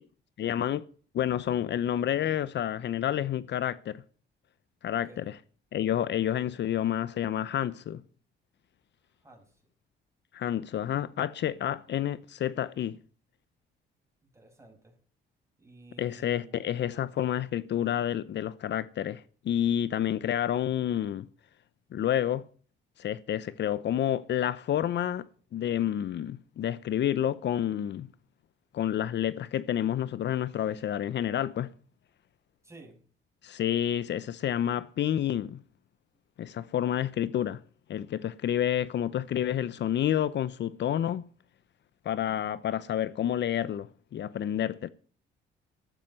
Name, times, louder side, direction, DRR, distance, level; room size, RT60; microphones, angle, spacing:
voice 1, 0.4-0.8 1.1-4.0 4.8-5.4 5.7-8.0 10.3-13.0 16.0-21.3 21.9-22.4 23.0-25.3 25.5-28.1 28.7-31.7 33.4-35.6 36.4-37.6 37.9-41.2 42.0-44.9, left 10 dB, 60° left, 0.8 m, -29 dB
voice 2, 4.9-5.3 9.2-9.5 14.3-14.9 15.6-16.7 32.6-33.0, right 2 dB, 15° right, 7.3 m, -52 dB
14.0 x 12.5 x 5.6 m
cardioid pair, 90°, 20 cm